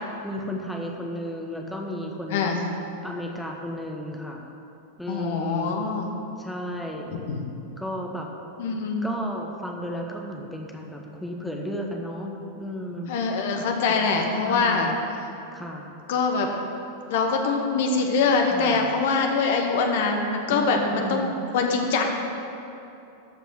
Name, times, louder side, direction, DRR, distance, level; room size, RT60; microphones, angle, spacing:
voice 1, 0.2-2.6 3.0-4.5 5.0-5.8 6.4-7.1 7.8-8.3 9.0-13.1 13.9-14.1 14.4-15.1 15.5-15.8 18.5-18.9 20.5-21.3, equal, 5° left, 0 dB, 1.1 m, -33 dB
voice 2, 5.1-6.1 7.1-7.5 8.6-9.1 13.1-14.9 16.1-16.5 17.1-21.3 21.5-22.0, left 4 dB, 55° left, 3 dB, 1.1 m, -24 dB
12.5 x 5.2 x 6.3 m, 2.8 s
figure-of-eight pair, 90°, 0 cm